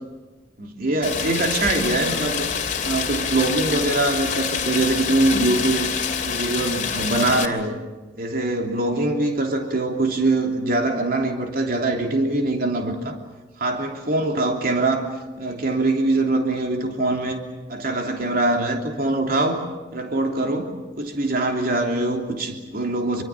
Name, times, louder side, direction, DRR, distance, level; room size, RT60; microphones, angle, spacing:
voice 1, 0.6-2.5 2.8-5.9 6.2-7.8 8.1-13.2 13.6-15.1 15.4-17.4 17.7-19.6 19.9-20.7 21.0-23.2, right 2 dB, 55° right, 2 dB, 3.1 m, -23 dB
Rain, 1.0-7.5, left 6 dB, 45° left, 2.6 m, -26 dB
26.5 x 24.5 x 7.4 m, 1.2 s
head